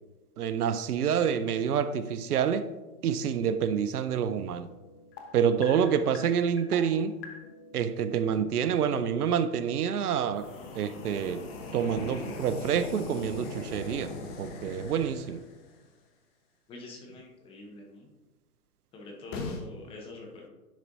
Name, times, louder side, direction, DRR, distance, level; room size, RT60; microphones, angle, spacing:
voice 1, 0.4-2.7 3.0-4.7 5.3-7.2 7.7-10.5 10.7-11.5 11.7-15.4, right 8 dB, 80° right, 0.6 m, -27 dB
sound 1, 4.3-9.0 10.3-15.8 19.3-19.6, left 3 dB, 40° left, 1.1 m, -42 dB
voice 2, 16.7-18.1 18.9-20.5, left 2 dB, 10° left, 0.7 m, -45 dB
10.5 x 4.3 x 2.6 m
hypercardioid pair, 135°, 45 cm